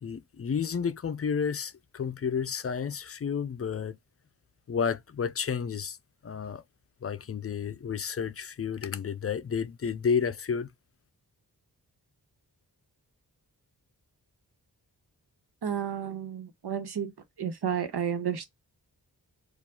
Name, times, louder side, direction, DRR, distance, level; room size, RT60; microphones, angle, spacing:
voice 1, 0.0-4.0 4.7-6.0 6.2-6.6 7.0-10.7, left 6 dB, 40° left, 0.4 m, -31 dB
voice 2, 15.6-17.1 17.4-18.4, right 8 dB, 90° right, 1.1 m, -31 dB
4.6 x 2.4 x 3.7 m
wide cardioid pair, 170°, 38 cm